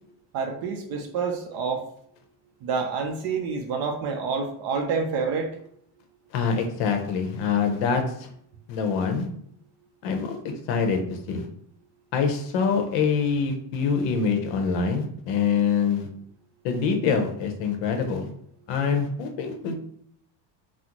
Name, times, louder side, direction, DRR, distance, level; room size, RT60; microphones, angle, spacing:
voice 1, 0.3-1.8 2.6-5.5, right 5 dB, 50° right, 4 dB, 0.4 m, -28 dB
voice 2, 6.3-8.3 8.7-9.3 10.0-10.4 10.7-11.5 12.1-16.1 16.6-18.3 18.7-19.7, left 5 dB, 60° left, 4 dB, 0.7 m, -25 dB
3.7 x 2.0 x 2.8 m, 0.68 s
cardioid pair, 175°, 50 cm